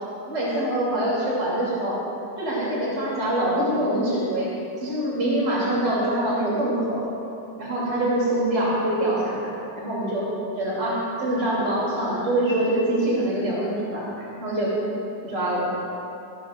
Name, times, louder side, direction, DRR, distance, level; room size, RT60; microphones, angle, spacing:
voice 1, 0.3-2.0 2.4-4.5 4.8-7.1 7.6-10.3 10.6-14.7 15.2-15.7, right 1 dB, 85° right, -7 dB, 3.9 m, -24 dB
20.5 x 15.0 x 2.6 m, 2.7 s
omnidirectional pair, 1.8 m